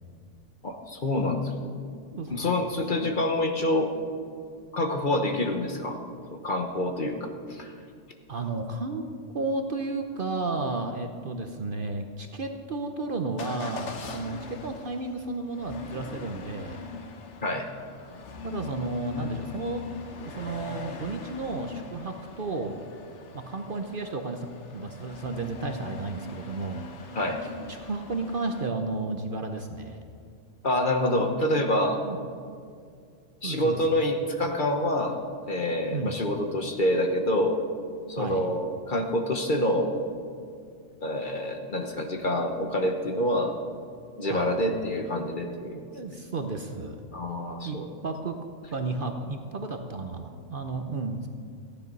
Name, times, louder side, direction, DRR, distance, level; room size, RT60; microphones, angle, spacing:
voice 1, 0.6-1.5 2.3-3.9 4.7-6.0 6.3-7.7 17.4-17.7 27.1-27.4 30.6-32.0 33.4-35.2 35.5-37.6 38.1-39.9 41.0-43.6 44.2-45.9 47.1-47.9, left 1 dB, 40° left, 4 dB, 1.1 m, -27 dB
voice 2, 8.3-9.1 9.3-16.8 18.4-19.8 20.2-22.8 23.3-24.5 24.7-27.2 27.4-30.0 32.0-32.2 33.4-34.0 35.9-36.2 38.2-38.5 44.3-44.5 45.9-47.0 47.6-48.4 48.7-51.3, right 3 dB, 50° right, 5 dB, 0.8 m, -33 dB
Motor vehicle (road) / Engine starting / Accelerating revving vroom, 13.4-28.7, left 4 dB, 65° left, 1.3 m, -42 dB
15.0 x 10.5 x 5.4 m, 2.3 s
omnidirectional pair, 1.4 m